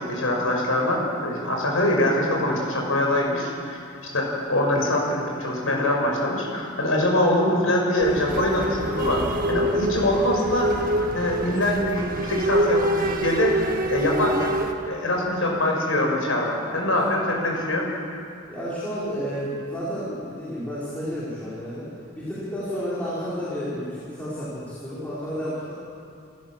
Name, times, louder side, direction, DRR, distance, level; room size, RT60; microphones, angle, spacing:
voice 1, 0.1-3.8 4.1-10.8 11.1-13.6 13.9-14.5 14.9-17.9, left 1 dB, 85° left, 0 dB, 5.8 m, -23 dB
sound 1, 8.0-14.7, right 1 dB, 45° right, 1.6 m, -26 dB
voice 2, 18.5-21.9 22.2-25.7, equal, 10° left, -11 dB, 4.7 m, -31 dB
29.5 x 14.5 x 7.5 m, 2.5 s
head